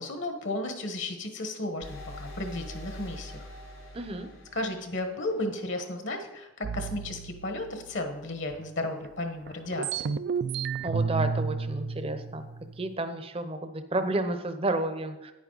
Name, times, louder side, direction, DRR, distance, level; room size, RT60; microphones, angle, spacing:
voice 1, 0.0-3.4 4.5-10.2, left 2 dB, 60° left, 5 dB, 1.3 m, -34 dB
sound 1, 1.8-5.5, left 1 dB, 80° left, 3.8 m, -43 dB
voice 2, 3.9-4.3 10.8-12.5 12.8-15.3, right 2 dB, 25° right, 9 dB, 0.7 m, -31 dB
sound 2, 6.6-8.5 9.0-9.1 9.4-12.9, right 5 dB, 50° right, 0.3 m, -32 dB
9.9 x 9.4 x 4.0 m, 1.0 s
head